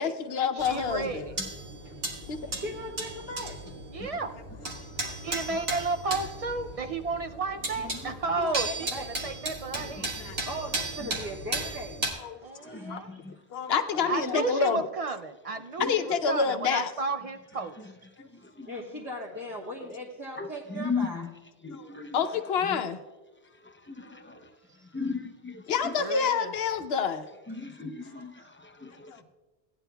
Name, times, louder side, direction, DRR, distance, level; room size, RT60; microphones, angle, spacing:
voice 1, 0.0-1.3 2.3-2.6 10.2-10.4 12.2-12.4 12.9-13.0 13.5-14.8 15.8-16.9 21.7-23.0 25.7-27.3 29.1-29.2, left 6 dB, 75° left, 0.9 m, -28 dB
voice 2, 0.6-1.3 3.9-4.3 5.2-8.9 9.2-10.2 12.4-13.1 14.1-17.8 26.0-26.5, right 3 dB, 50° right, 0.4 m, -32 dB
sound 1, 0.6-12.1, right 2 dB, 80° right, 1.9 m, -36 dB
voice 3, 2.4-3.6 8.4-9.1 10.4-12.0 12.4-13.0 13.9-14.4 18.6-21.3, equal, 20° right, 1.3 m, -38 dB
voice 4, 9.8-10.4 12.6-13.3 18.6-18.7 20.4-21.3 21.6-22.2 22.7-22.8 23.9-24.4 24.9-25.9 27.5-29.1, left 4 dB, 20° left, 0.4 m, -36 dB
17.0 x 10.0 x 2.3 m
omnidirectional pair, 1.1 m